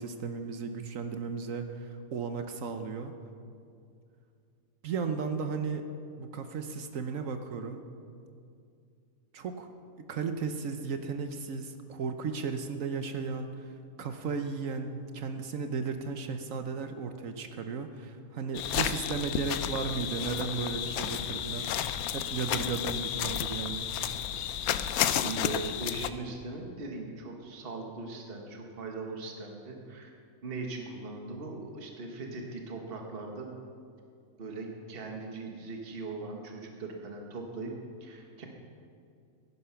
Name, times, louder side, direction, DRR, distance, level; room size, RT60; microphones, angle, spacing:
voice 1, 0.0-3.1 4.8-5.8 6.2-7.8 9.3-9.7 10.1-13.7 14.0-21.7 22.1-23.9, right 5 dB, 70° right, 7 dB, 1.2 m, -35 dB
sound 1, 18.5-26.1, left 10 dB, 90° left, 1.1 m, -32 dB
voice 2, 24.8-30.1 30.4-33.6 34.4-37.7 38.0-38.5, right 3 dB, 40° right, 2 dB, 1.6 m, -40 dB
15.5 x 11.0 x 5.8 m, 2.4 s
omnidirectional pair, 1.5 m